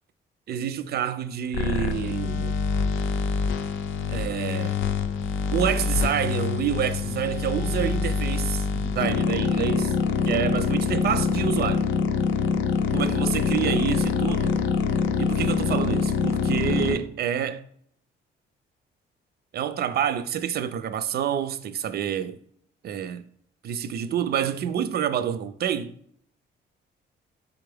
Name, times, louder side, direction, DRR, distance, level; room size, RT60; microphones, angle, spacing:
voice 1, 0.5-2.6 4.1-4.8 5.5-9.9 10.3-11.9 12.9-14.6 15.2-17.7 19.5-22.4 22.8-23.2 23.6-25.9, right 9 dB, 55° right, 0.4 m, -28 dB
sound 1, 1.5-16.9, left 5 dB, 80° left, 0.5 m, -25 dB
4.1 x 3.5 x 3.4 m
cardioid pair, 90°, 20 cm